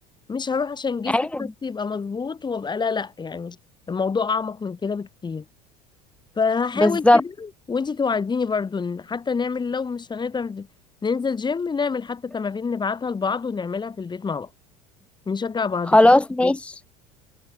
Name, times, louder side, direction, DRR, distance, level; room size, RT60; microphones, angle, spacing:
voice 1, 0.3-3.6 3.9-5.5 6.4-10.7 11.0-14.5 15.3-16.0 16.4-16.5, left 5 dB, 25° left, 2.3 m, -27 dB
voice 2, 1.1-1.5 6.8-7.2 15.9-17.0, left 1 dB, 5° left, 0.4 m, -18 dB
hypercardioid pair, 75°, 19 cm